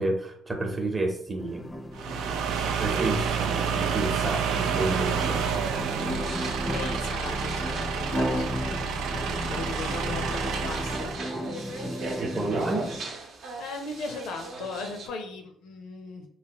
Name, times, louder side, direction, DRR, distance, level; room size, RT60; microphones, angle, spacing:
voice 1, 0.0-1.7 2.8-5.4 10.1-10.2 12.2-12.9, right 2 dB, 30° right, 3 dB, 0.7 m, -30 dB
sound 1, 1.4-13.0, equal, 20° left, 0.5 m, -35 dB
sound 2, 1.9-11.3, right 6 dB, 85° right, 0.3 m, -29 dB
sound 3, 6.2-15.1, right 3 dB, 70° right, 0.7 m, -40 dB
voice 2, 6.6-9.2 9.5-11.1 11.5-12.1 13.6-16.3, left 3 dB, 85° left, 5 dB, 0.6 m, -38 dB
3.1 x 2.5 x 2.9 m, 0.63 s
cardioid pair, 85°, 0 cm